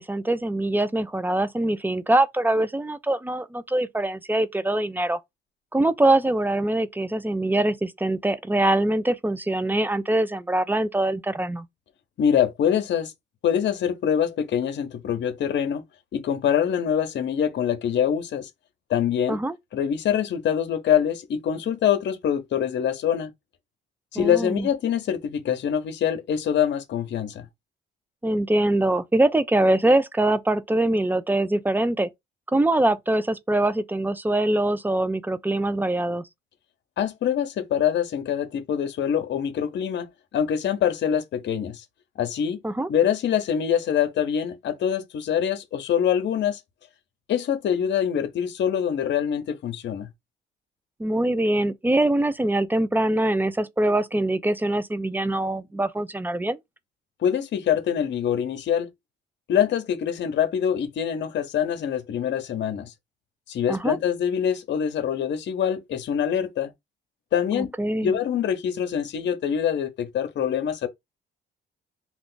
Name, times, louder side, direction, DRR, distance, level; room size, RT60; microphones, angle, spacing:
voice 1, 0.0-5.2 5.7-11.6 19.3-19.5 24.2-24.7 28.2-32.1 32.5-36.2 42.6-42.9 51.0-56.6 63.7-64.0 67.5-68.1, right 1 dB, 10° right, 0.3 m, -23 dB
voice 2, 12.2-13.1 13.4-15.8 16.1-18.5 18.9-19.4 19.7-23.3 24.1-27.5 37.0-40.1 40.3-41.8 42.2-42.6 42.9-46.6 47.3-50.1 57.2-58.9 59.5-62.9 63.5-66.7 67.3-67.7 68.0-70.9, left 9 dB, 65° left, 0.7 m, -24 dB
2.4 x 2.4 x 3.7 m
cardioid pair, 90°, 20 cm